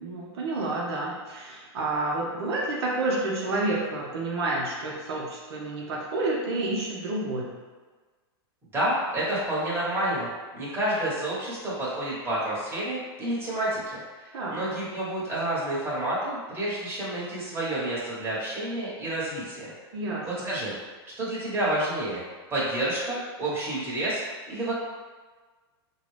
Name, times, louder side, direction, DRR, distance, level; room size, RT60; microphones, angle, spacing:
voice 1, 0.0-7.5 14.3-14.6 19.9-20.3, right 2 dB, 75° right, -4 dB, 0.8 m, -29 dB
voice 2, 8.7-19.7 20.2-20.8 21.2-22.2 22.5-24.2 24.5-24.7, right 1 dB, 15° right, -8 dB, 1.4 m, -29 dB
3.7 x 2.3 x 3.3 m, 1.4 s
hypercardioid pair, 120°, 13 cm